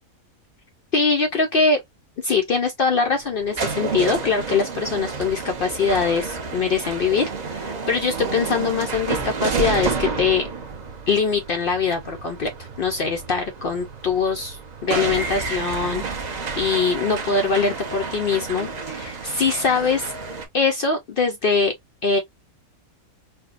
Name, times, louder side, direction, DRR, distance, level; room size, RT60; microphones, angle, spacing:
voice 1, 0.9-1.8 2.2-10.5 11.1-20.1 20.5-21.7 22.0-22.2, left 4 dB, 75° left, 0.5 m, -22 dB
sound 1, 3.0-20.4, right 4 dB, 45° right, 0.6 m, -30 dB
4.4 x 2.1 x 2.3 m
omnidirectional pair, 1.5 m